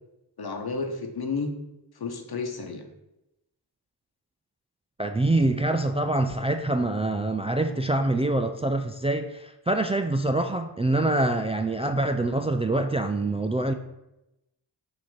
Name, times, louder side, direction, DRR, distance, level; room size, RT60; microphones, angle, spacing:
voice 1, 0.4-1.5 2.0-2.8, left 4 dB, 55° left, 5 dB, 1.0 m, -31 dB
voice 2, 5.0-13.7, right 2 dB, 15° right, 6 dB, 0.3 m, -25 dB
6.2 x 2.9 x 5.5 m, 0.91 s
cardioid pair, 50°, 44 cm